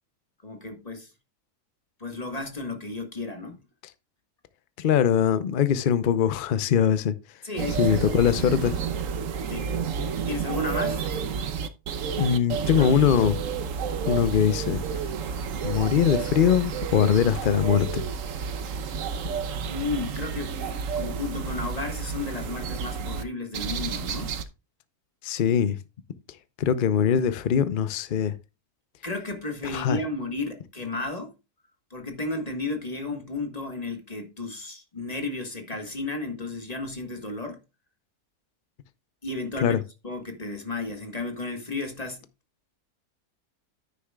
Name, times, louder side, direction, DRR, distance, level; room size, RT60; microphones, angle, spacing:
voice 1, 0.4-1.1 2.0-3.6 7.4-8.3 9.5-9.7 10.3-11.0 12.1-12.5 12.7-12.9 18.3-18.4 19.7-20.6 20.9-24.3 29.0-31.3 31.9-37.6 39.2-39.8 40.0-42.2, left 3 dB, 25° left, 1.5 m, -33 dB
voice 2, 4.8-7.1 7.8-8.8 12.2-13.4 14.1-14.8 15.6-18.0 25.2-25.8 26.6-28.3 29.6-30.0 39.6-39.8, left 8 dB, 45° left, 0.7 m, -22 dB
sound 1, 7.6-23.2 23.5-24.4, right 6 dB, 60° right, 1.2 m, -30 dB
9.7 x 9.6 x 2.3 m
omnidirectional pair, 1.6 m